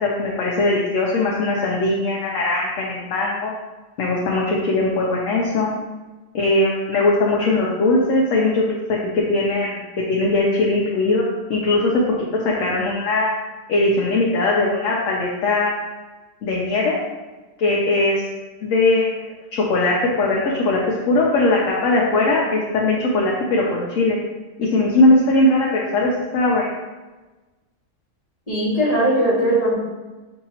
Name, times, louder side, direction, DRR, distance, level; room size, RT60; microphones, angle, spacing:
voice 1, 0.0-3.5 4.0-5.7 6.3-11.2 11.5-12.1 12.4-13.3 13.7-15.7 16.4-17.0 17.6-18.2 18.6-24.2 24.6-26.7, left 2 dB, 65° left, -3 dB, 1.0 m, -20 dB
voice 2, 28.5-29.7, right 1 dB, 25° left, -7 dB, 1.2 m, -19 dB
6.1 x 2.8 x 2.8 m, 1.2 s
omnidirectional pair, 1.5 m